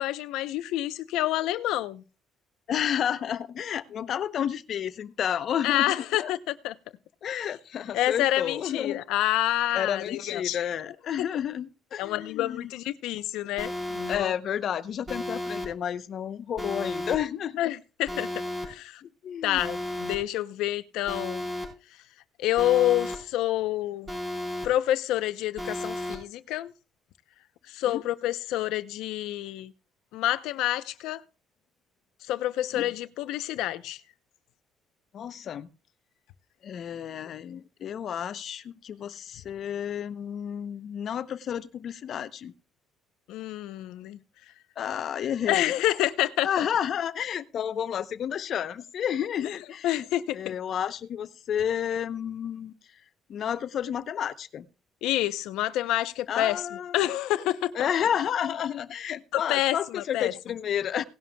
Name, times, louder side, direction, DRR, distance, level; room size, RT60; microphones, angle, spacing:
voice 1, 0.0-2.0 5.6-6.7 7.9-10.6 12.0-14.3 17.6-18.3 18.6-19.0 19.4-21.4 22.4-24.1 24.6-26.7 27.7-29.7 30.1-31.2 32.3-34.0 43.3-44.2 45.5-46.6 49.4-49.6 49.8-50.5 55.0-57.7 59.3-60.3, left 14 dB, 85° left, 0.7 m, -28 dB
voice 2, 2.7-6.3 7.2-9.0 9.7-12.7 14.1-17.7 19.0-19.6 27.9-28.0 32.7-32.9 35.1-35.7 36.6-42.5 44.8-45.7 46.4-50.0 50.3-52.7 53.3-54.6 56.3-57.0 57.7-61.0, left 9 dB, 50° left, 0.8 m, -31 dB
Alarm, 13.6-14.2 15.1-15.7 16.6-17.2 18.1-18.7 19.6-20.2 21.1-21.7 22.6-23.2 24.1-24.7 25.6-26.2, left 1 dB, 15° right, 4.5 m, -33 dB
18.0 x 11.0 x 2.3 m
cardioid pair, 145°, 0 cm